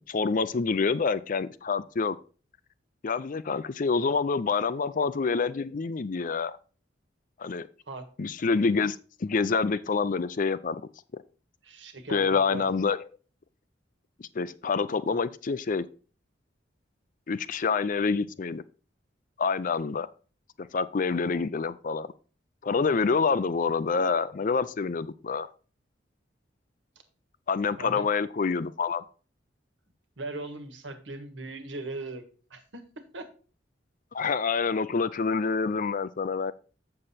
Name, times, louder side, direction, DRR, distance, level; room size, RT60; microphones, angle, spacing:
voice 1, 0.1-2.2 3.0-6.6 7.4-7.7 8.2-10.8 12.1-13.0 14.2-15.8 17.3-18.6 19.4-20.1 20.6-22.1 22.6-25.5 27.5-29.0 34.1-36.5, left 5 dB, 45° left, 0.5 m, -27 dB
voice 2, 11.6-12.6 27.8-28.0 30.2-32.2 32.5-32.8 33.1-33.2, right 2 dB, 80° right, 1.6 m, -38 dB
7.5 x 6.8 x 4.1 m
head